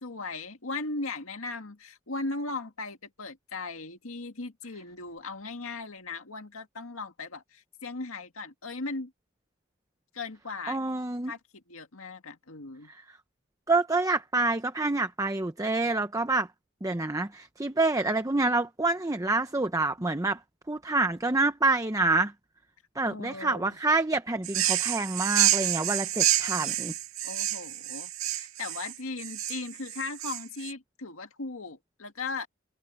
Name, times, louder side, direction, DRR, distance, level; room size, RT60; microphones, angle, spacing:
voice 1, 0.0-9.1 10.1-10.8 11.3-12.9 23.0-23.8 27.2-32.5, left 3 dB, 80° left, 2.0 m, -38 dB
voice 2, 10.7-11.3 13.7-16.5 16.8-20.4 20.7-22.3 23.0-26.9, right 3 dB, 15° right, 0.8 m, -27 dB
sound 1, 24.4-30.7, right 12 dB, 80° right, 1.8 m, -28 dB
head